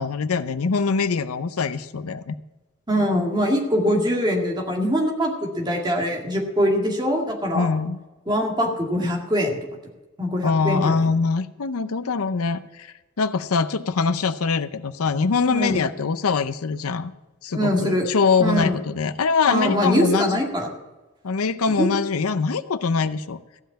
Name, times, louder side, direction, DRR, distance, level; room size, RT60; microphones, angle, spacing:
voice 1, 0.0-2.4 7.5-8.0 10.4-17.1 17.4-20.4 21.2-23.4, left 5 dB, 90° left, 13 dB, 0.6 m, -23 dB
voice 2, 2.9-7.7 8.3-9.6 10.2-11.1 15.5-15.8 17.5-18.1 18.4-18.8 19.5-20.7 21.8-21.9, equal, 20° right, 1 dB, 2.0 m, -23 dB
15.0 x 5.7 x 8.7 m, 1.1 s
head